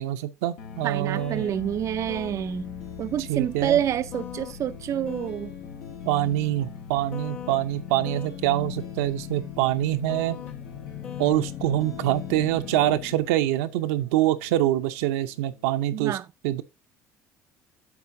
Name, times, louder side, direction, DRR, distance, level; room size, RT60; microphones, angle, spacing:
voice 1, 0.0-1.5 3.3-3.8 6.1-10.4 11.2-16.2 16.4-16.6, right 14 dB, 90° right, 0.6 m, -25 dB
sound 1, 0.6-15.6, left 6 dB, 90° left, 1.7 m, -42 dB
sound 2, 0.6-13.3, left 11 dB, 55° left, 0.6 m, -41 dB
voice 2, 0.8-2.6 3.0-5.5 15.9-16.3, right 10 dB, 50° right, 0.4 m, -27 dB
9.6 x 6.8 x 2.6 m
supercardioid pair, 75°, 7 cm